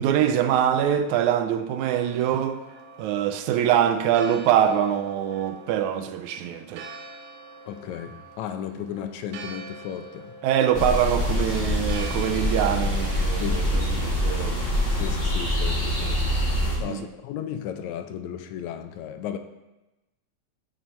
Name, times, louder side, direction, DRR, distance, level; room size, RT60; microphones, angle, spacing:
voice 1, 0.0-2.6 3.0-6.9 10.4-14.6 16.9-17.1, right 9 dB, 85° right, 2.0 m, -24 dB
Church bell, 1.9-14.1, right 3 dB, 70° right, 1.6 m, -45 dB
voice 2, 7.7-10.4 13.4-14.1 14.9-16.4 16.8-19.4, left 9 dB, 80° left, 1.9 m, -35 dB
sound 1, 10.7-16.8, left 1 dB, 50° left, 0.6 m, -25 dB
14.0 x 6.0 x 3.1 m
omnidirectional pair, 3.4 m